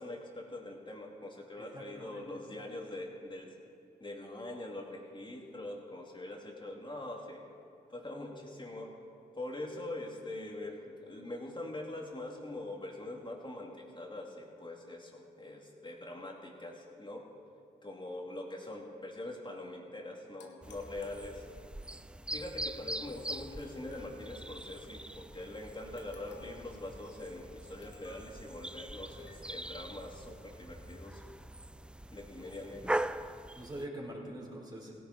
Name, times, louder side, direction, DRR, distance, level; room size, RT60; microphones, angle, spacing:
voice 1, 0.0-3.5 4.0-7.4 7.9-9.0 9.3-17.2 17.8-21.4 22.3-31.2 32.1-33.0, left 2 dB, 25° left, 0 dB, 2.6 m, -43 dB
voice 2, 1.6-2.3 32.4-32.5 33.5-34.9, right 1 dB, 25° right, -2 dB, 3.9 m, -44 dB
sound 1, 20.4-21.8 23.3-24.7 26.0-26.7 27.8-28.3 29.1-29.5, left 4 dB, 75° left, 1.3 m, -59 dB
sound 2, 20.6-33.9, right 1 dB, 5° right, 0.4 m, -42 dB
17.0 x 11.0 x 4.3 m, 2.6 s
supercardioid pair, 40°, 18 cm